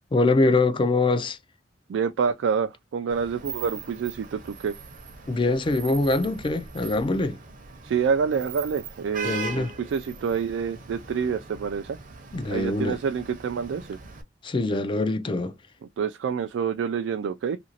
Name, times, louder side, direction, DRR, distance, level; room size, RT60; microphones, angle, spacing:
voice 1, 0.1-1.4 5.3-7.4 9.2-9.7 12.3-13.0 14.4-15.5, left 2 dB, 25° left, 0.4 m, -23 dB
voice 2, 1.9-4.7 7.8-12.0 12.5-14.0 16.0-17.6, right 6 dB, 75° right, 0.3 m, -27 dB
Vehicle horn car horn honking / Traffic noise roadway noise, 3.1-14.2, right 4 dB, 45° right, 0.7 m, -40 dB
2.8 x 2.5 x 2.7 m
head